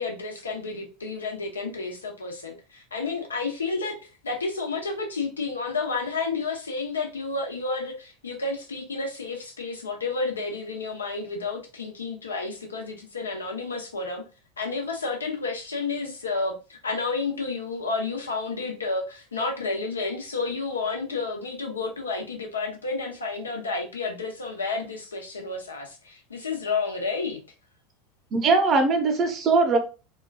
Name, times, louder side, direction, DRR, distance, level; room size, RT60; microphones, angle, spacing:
voice 1, 0.0-3.9 4.2-14.2 14.6-27.4, left 4 dB, 85° left, 0.7 m, -31 dB
voice 2, 28.3-29.8, right 3 dB, 40° right, 0.8 m, -20 dB
2.9 x 2.3 x 2.3 m
hypercardioid pair, 80°, 0 cm